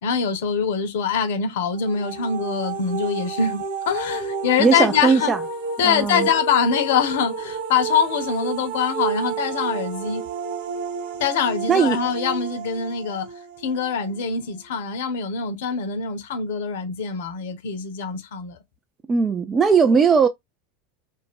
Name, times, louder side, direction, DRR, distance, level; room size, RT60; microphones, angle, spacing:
voice 1, 0.0-5.3 5.8-10.2 11.2-13.3 13.6-18.6, left 6 dB, 70° left, 0.7 m, -24 dB
sound 1, 1.7-14.6, right 5 dB, 70° right, 0.7 m, -31 dB
voice 2, 4.6-5.4 5.8-6.3 11.7-12.0 19.1-20.3, right 5 dB, 25° right, 0.3 m, -18 dB
2.5 x 2.1 x 3.4 m
hypercardioid pair, 90°, 0 cm